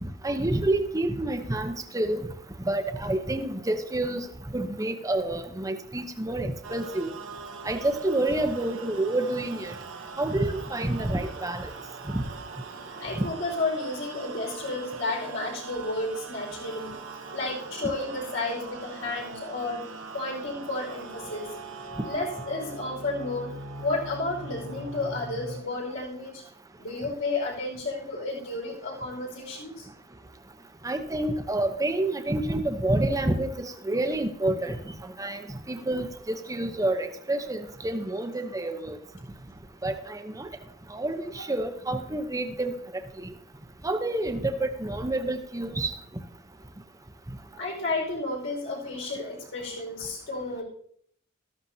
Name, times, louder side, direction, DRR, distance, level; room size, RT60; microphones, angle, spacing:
voice 1, 0.0-2.3 2.6-4.3 4.5-7.1 7.6-9.8 10.2-11.7 12.1-12.2 30.8-34.8 35.0-39.0 39.8-40.5 40.9-42.8 43.2-43.3 43.8-45.9, right 1 dB, 15° right, 7 dB, 0.8 m, -28 dB
sound 1, 6.6-25.6, right 4 dB, 75° right, 1.1 m, -41 dB
voice 2, 13.0-17.0 17.3-19.8 20.1-21.6 22.0-23.5 23.8-26.4 26.8-29.9 47.6-50.6, left 2 dB, 65° left, -1 dB, 4.9 m, -32 dB
13.5 x 13.0 x 2.8 m, 0.62 s
head